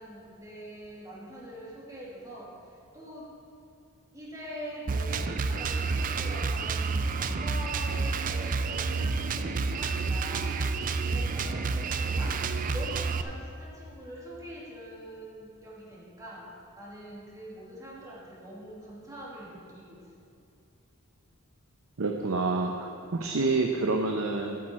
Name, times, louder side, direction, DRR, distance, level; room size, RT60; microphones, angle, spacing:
voice 1, 0.0-3.3 4.1-12.4 12.7-20.1, right 1 dB, 15° right, -6 dB, 2.3 m, -44 dB
Drum kit, 4.9-13.2, right 4 dB, 40° right, 0.4 m, -29 dB
voice 2, 22.0-24.6, right 3 dB, 70° right, 2 dB, 0.7 m, -28 dB
12.5 x 9.5 x 4.4 m, 2.5 s
head